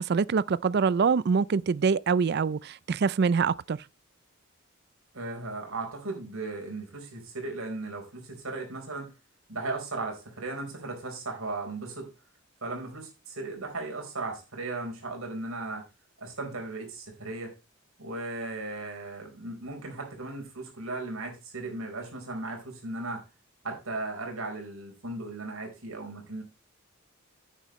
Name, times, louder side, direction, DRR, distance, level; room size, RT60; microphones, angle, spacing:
voice 1, 0.0-3.8, right 5 dB, 50° right, 0.4 m, -25 dB
voice 2, 5.1-9.1 9.5-12.1 12.6-15.9 16.2-17.5 18.0-23.2 23.6-26.4, right 2 dB, 80° right, 4.2 m, -36 dB
10.5 x 9.2 x 3.1 m
head